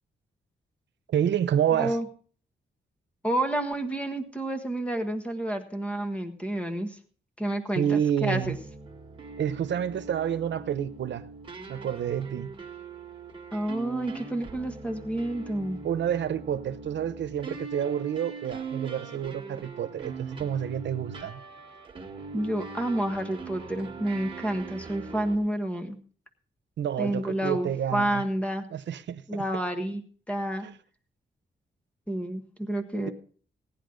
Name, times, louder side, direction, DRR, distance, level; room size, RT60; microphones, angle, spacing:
voice 1, 1.1-2.0 7.7-8.6 9.4-11.2 11.7-12.5 15.8-21.4 26.8-28.2 28.7-29.4 30.6-30.8, right 9 dB, 90° right, 0.8 m, -29 dB
voice 2, 1.7-2.1 3.2-7.0 7.4-8.5 13.5-15.8 22.3-26.0 27.0-28.6 29.3-30.0 30.3-30.7 32.1-33.1, right 1 dB, 5° left, 1.3 m, -29 dB
sound 1, 8.4-25.4, right 4 dB, 30° right, 1.7 m, -41 dB
17.0 x 10.0 x 3.8 m
wide cardioid pair, 175°, 18 cm